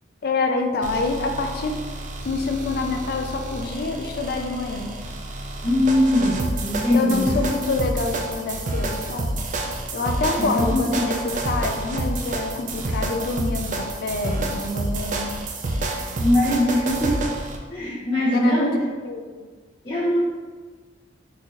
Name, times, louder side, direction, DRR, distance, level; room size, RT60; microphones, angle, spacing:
voice 1, 0.2-1.8 2.2-4.9 6.9-9.3 9.9-15.4 18.3-18.7 19.0-19.2, left 3 dB, 55° left, 4 dB, 0.4 m, -26 dB
sound 1, 0.8-17.6, right 2 dB, 40° right, 0.4 m, -29 dB
voice 2, 5.6-7.4 10.4-11.1 16.2-17.2 17.7-18.7 19.8-20.2, left 1 dB, 25° left, -13 dB, 0.8 m, -21 dB
3.8 x 2.6 x 2.8 m, 1.4 s
head